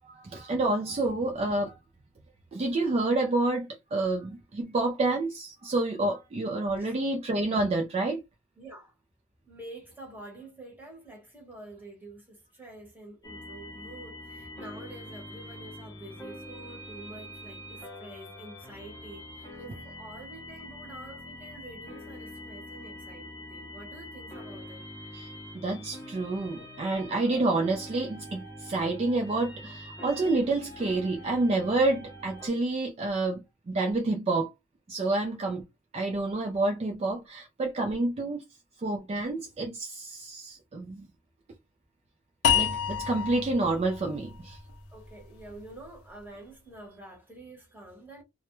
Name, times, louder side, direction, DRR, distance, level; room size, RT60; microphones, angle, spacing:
voice 1, 0.0-1.7 2.5-8.2 25.1-34.5 34.9-35.6 35.9-38.4 38.8-41.1 42.5-44.6, right 2 dB, 30° right, 0.3 m, -28 dB
voice 2, 8.6-8.9 9.5-24.8 44.9-48.2, right 1 dB, 10° right, 0.9 m, -47 dB
sound 1, 13.2-32.5, left 1 dB, 15° left, 0.6 m, -44 dB
sound 2, 42.4-45.6, left 8 dB, 85° left, 0.5 m, -29 dB
2.2 x 2.0 x 2.9 m
head